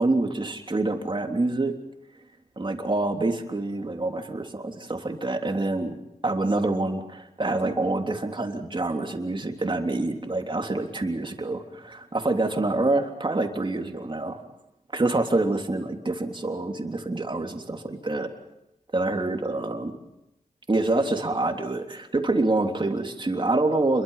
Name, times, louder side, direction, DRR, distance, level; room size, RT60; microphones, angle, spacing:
voice 1, 0.0-1.8 2.6-6.0 6.2-14.4 14.9-18.3 18.9-19.9 20.7-24.0, right 2 dB, 35° right, 4 dB, 3.4 m, -26 dB
29.0 x 22.5 x 5.8 m, 0.87 s
cardioid pair, 70°, 15 cm